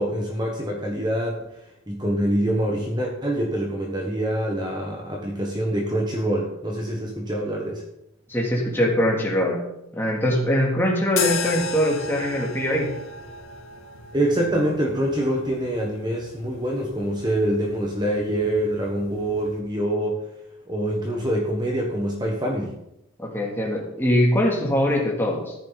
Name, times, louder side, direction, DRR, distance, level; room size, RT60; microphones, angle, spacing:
voice 1, 0.0-1.5 1.9-7.8 14.1-20.2 20.7-22.8, right 1 dB, 20° right, 0 dB, 1.3 m, -25 dB
voice 2, 8.3-9.6 9.9-12.9 23.2-25.5, equal, 10° left, -2 dB, 2.6 m, -22 dB
sound 1, 11.1-19.6, left 4 dB, 75° left, 2.1 m, -35 dB
14.0 x 10.5 x 4.0 m, 0.85 s
head